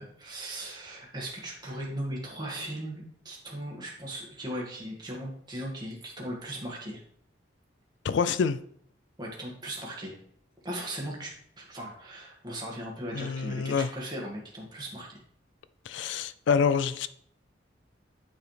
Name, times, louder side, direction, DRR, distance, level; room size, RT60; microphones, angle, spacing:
voice 1, 0.0-7.0 9.2-10.2 10.6-15.2, right 1 dB, 20° right, 1.9 m, -38 dB
voice 2, 8.0-8.6 13.1-13.9 15.9-17.1, left 6 dB, 75° left, 0.3 m, -26 dB
9.1 x 4.8 x 3.3 m
head